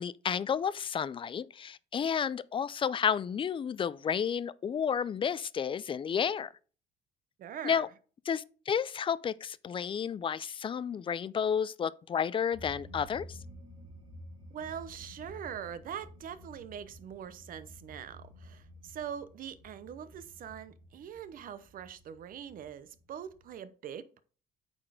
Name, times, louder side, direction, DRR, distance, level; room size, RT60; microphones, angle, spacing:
voice 1, 0.0-6.5 7.6-7.9 8.3-13.4, left 7 dB, 30° left, 0.4 m, -31 dB
voice 2, 7.4-7.8 14.5-24.2, right 8 dB, 55° right, 0.8 m, -43 dB
sound 1, 12.5-23.5, equal, 30° right, 3.5 m, -51 dB
8.8 x 4.2 x 4.9 m
cardioid pair, 110°, 17 cm